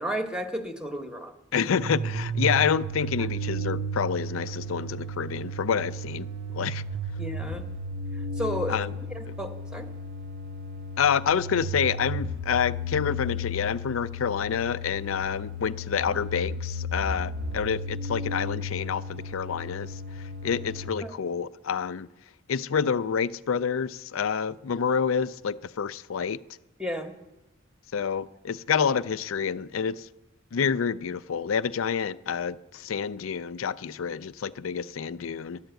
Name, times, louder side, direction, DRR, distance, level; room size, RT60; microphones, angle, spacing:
voice 1, 0.0-1.6 3.2-3.3 7.2-7.6 8.4-9.9 21.0-21.1 26.8-27.1, equal, 5° right, 0.9 m, -33 dB
voice 2, 1.5-6.3 6.5-6.8 8.7-8.9 11.0-19.9 20.4-22.1 22.5-26.4 27.9-30.1 30.5-35.6, left 7 dB, 85° left, 0.4 m, -28 dB
sound 1, 1.7-20.9, equal, 50° right, 0.7 m, -34 dB
11.5 x 10.0 x 7.9 m
head